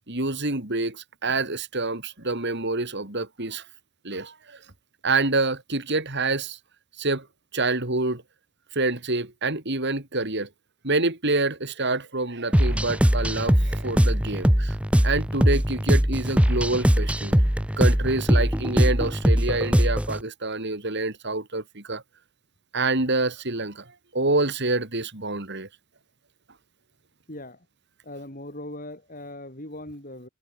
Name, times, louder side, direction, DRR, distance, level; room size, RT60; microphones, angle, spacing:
voice 1, 0.1-3.6 4.0-4.6 5.0-6.6 7.0-7.2 7.5-8.2 8.7-10.5 10.8-14.7 15.0-17.4 17.8-22.0 22.7-23.8 24.1-25.7, right 3 dB, 50° right, 3.1 m, -27 dB
sound 1, 12.5-20.2, equal, 5° right, 1.1 m, -21 dB
voice 2, 27.3-27.7 28.0-30.3, left 1 dB, 40° left, 6.9 m, -39 dB
head